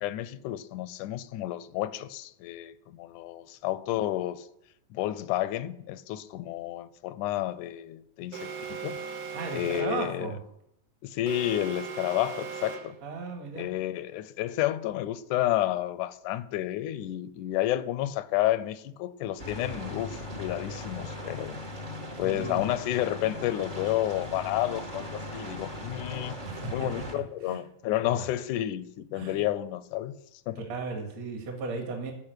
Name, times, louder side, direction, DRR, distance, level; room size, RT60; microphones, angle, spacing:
voice 1, 0.0-4.5 4.9-9.0 9.5-10.3 11.0-13.0 13.6-21.6 22.2-26.4 26.7-30.2 30.5-30.6, left 14 dB, 80° left, 1.9 m, -31 dB
Alarm, 8.3-10.1 11.3-13.1, right 6 dB, 75° right, 3.1 m, -38 dB
voice 2, 9.3-10.4 13.0-13.7 22.2-22.7 26.4-27.6 28.1-28.3 29.1-29.4 30.6-32.1, right 4 dB, 55° right, 2.9 m, -36 dB
sound 1, 19.4-27.1, left 1 dB, 40° right, 0.7 m, -39 dB
15.5 x 5.5 x 8.1 m
omnidirectional pair, 3.9 m